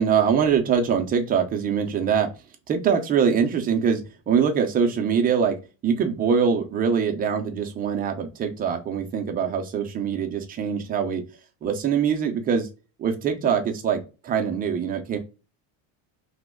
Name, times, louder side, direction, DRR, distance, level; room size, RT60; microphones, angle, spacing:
voice 1, 0.0-2.3 2.7-5.6 5.8-11.2 11.6-12.7 13.0-15.2, right 7 dB, 20° right, 4 dB, 0.3 m, -23 dB
3.0 x 2.1 x 3.4 m, 0.30 s
cardioid pair, 140°, 48 cm